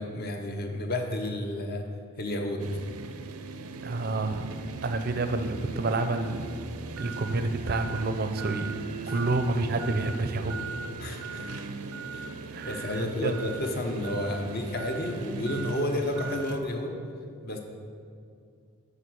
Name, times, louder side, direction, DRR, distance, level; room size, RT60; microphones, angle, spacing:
voice 1, 0.0-1.8 2.2-2.7 9.1-9.2 11.0-11.5 12.1-12.3 12.6-17.0 17.4-17.6, left 1 dB, 45° left, 3 dB, 0.8 m, -31 dB
sound 1, 2.6-16.6, right 4 dB, 90° right, 0.6 m, -38 dB
voice 2, 3.8-6.5 7.0-8.7 9.1-10.5 12.5-13.3, right 2 dB, 45° right, 9 dB, 0.5 m, -29 dB
10.5 x 4.0 x 6.2 m, 2.4 s
head